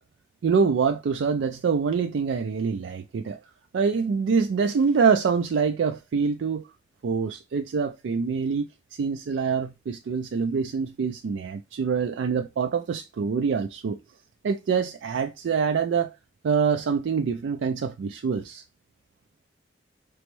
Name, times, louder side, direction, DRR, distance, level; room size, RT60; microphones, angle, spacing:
voice 1, 0.4-3.4 3.7-6.7 7.0-14.0 14.4-16.2 16.4-18.6, right 5 dB, 90° right, 0.4 m, -25 dB
4.3 x 3.1 x 3.0 m
head